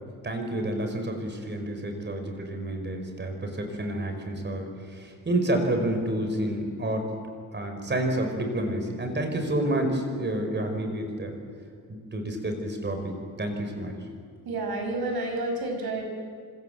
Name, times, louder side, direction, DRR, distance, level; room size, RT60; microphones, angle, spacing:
voice 1, 0.2-7.1 7.5-11.4 11.9-13.9, right 1 dB, 30° right, 5 dB, 4.9 m, -29 dB
voice 2, 14.4-16.0, right 2 dB, 90° right, 4 dB, 6.3 m, -30 dB
27.5 x 26.0 x 7.9 m, 2.2 s
wide cardioid pair, 160°, 36 cm